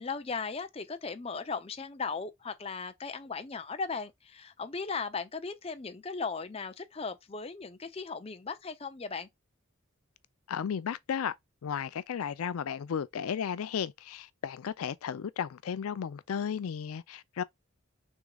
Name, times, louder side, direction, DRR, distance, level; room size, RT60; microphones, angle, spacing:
voice 1, 0.0-9.3, left 4 dB, 25° left, 0.5 m, -37 dB
voice 2, 10.5-11.3 11.6-17.4, left 7 dB, 85° left, 0.4 m, -34 dB
6.2 x 3.7 x 2.3 m
head